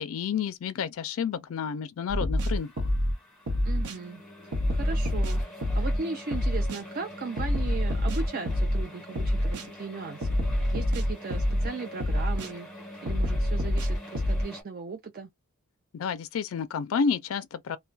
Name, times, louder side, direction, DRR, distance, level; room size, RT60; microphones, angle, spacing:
voice 1, 0.0-2.7 15.9-17.8, left 6 dB, 65° left, 0.3 m, -30 dB
sound 1, 2.1-3.1 3.5-4.0 4.5-6.0 6.3-6.8 7.4-8.8 9.2-9.7 10.2-11.7 12.0-12.5 13.1-14.4, equal, 90° right, 0.8 m, -26 dB
sound 2, 2.4-14.6, left 1 dB, 5° left, 1.1 m, -45 dB
voice 2, 3.6-10.4 10.7-15.3, right 4 dB, 40° right, 0.4 m, -37 dB
2.2 x 2.1 x 3.8 m
head